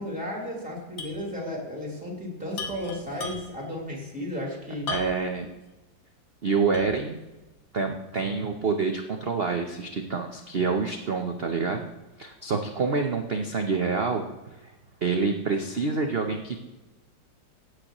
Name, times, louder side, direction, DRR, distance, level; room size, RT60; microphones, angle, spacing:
voice 1, 0.0-4.9, left 1 dB, 5° right, -2 dB, 3.3 m, -34 dB
sound 1, 1.0-1.2 1.5-1.6 2.5-3.7 4.9-5.4 5.9-6.0 6.7-7.1, left 3 dB, 75° left, 2.2 m, -36 dB
voice 2, 4.9-5.5 6.4-7.2 7.7-11.9 12.2-14.2 15.0-16.6, right 4 dB, 70° right, 4 dB, 0.5 m, -27 dB
16.0 x 8.0 x 3.0 m, 1.1 s
omnidirectional pair, 2.2 m